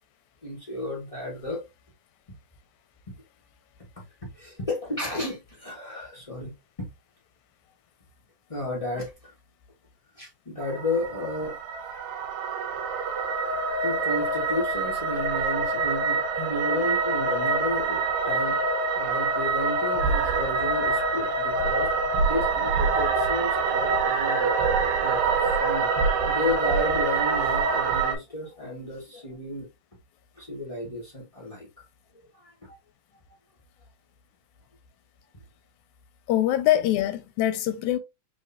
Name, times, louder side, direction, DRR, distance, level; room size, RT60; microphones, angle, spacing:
voice 1, 0.4-1.6 3.1-3.2 4.0-6.9 8.5-9.3 10.1-11.6 13.8-18.6 18.9-21.9 22.2-24.5 25.0-29.7 30.4-31.8 32.1-32.8, left 1 dB, 65° left, 0.3 m, -33 dB
sound 1, 10.6-28.2, right 4 dB, 80° right, 2.1 m, -25 dB
voice 2, 36.3-38.0, left 13 dB, 90° left, 2.1 m, -23 dB
5.2 x 3.2 x 2.6 m
omnidirectional pair, 3.4 m